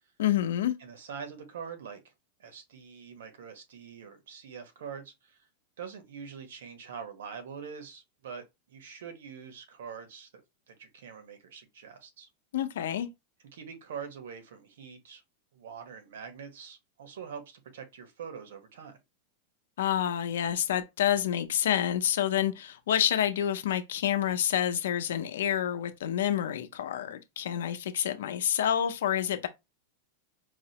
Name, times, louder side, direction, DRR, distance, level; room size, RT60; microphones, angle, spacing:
voice 1, 0.2-0.8 12.5-13.1 19.8-29.5, left 10 dB, 85° left, 0.6 m, -28 dB
voice 2, 0.8-2.0 2.4-5.4 5.8-10.3 10.7-12.3 13.5-15.2 15.5-19.0, right 6 dB, 85° right, 1.1 m, -44 dB
4.7 x 2.1 x 2.8 m
supercardioid pair, 165°, 0 cm